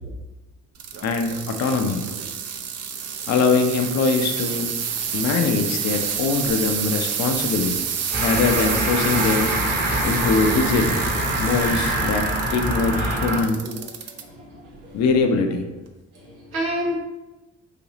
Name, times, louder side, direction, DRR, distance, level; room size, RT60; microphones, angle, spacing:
sound 1, 0.7-14.2 14.7-15.2 15.9-16.0, right 7 dB, 40° right, 0.5 m, -29 dB
voice 1, 1.0-2.0 3.3-4.8 5.1-7.8 8.2-9.6 10.0-11.0 11.4-13.6 14.9-15.7, left 4 dB, 40° left, 5 dB, 0.6 m, -22 dB
sound 2, 8.1-13.4, right 1 dB, 25° right, 1.0 m, -24 dB
voice 2, 14.1-15.0 16.1-17.0, equal, 85° right, -3 dB, 0.7 m, -31 dB
4.0 x 2.7 x 3.0 m, 1.1 s
figure-of-eight pair, 40°, 41 cm